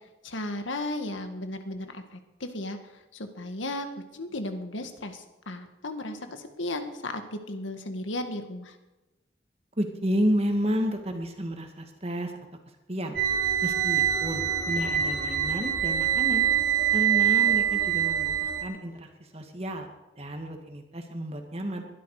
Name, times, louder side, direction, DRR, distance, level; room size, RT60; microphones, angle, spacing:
voice 1, 0.2-3.9 4.1-8.8, left 1 dB, 85° left, 7 dB, 1.9 m, -35 dB
voice 2, 9.8-12.3 12.9-13.2 13.6-16.5 16.9-19.9 20.2-21.8, equal, 30° right, 5 dB, 2.0 m, -31 dB
sound 1, 13.2-18.6, right 9 dB, 60° right, 3.9 m, -25 dB
21.5 x 12.0 x 5.0 m, 1.0 s
head